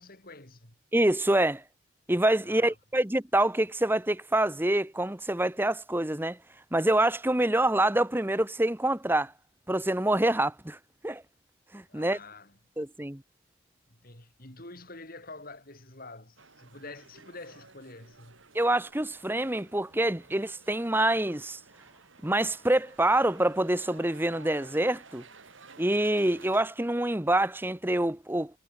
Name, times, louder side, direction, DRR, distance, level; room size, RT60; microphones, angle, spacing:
voice 1, 0.0-0.8 2.4-2.7 11.9-12.6 13.9-18.4, left 2 dB, 45° left, 6.2 m, -47 dB
voice 2, 0.9-1.6 2.1-6.4 6.7-9.3 9.7-10.8 11.0-11.2 11.7-12.2 12.8-13.2 18.5-21.6 22.2-25.2 25.8-28.6, right 1 dB, 10° right, 1.0 m, -26 dB
sound 1, 16.4-26.6, right 4 dB, 70° right, 3.7 m, -54 dB
head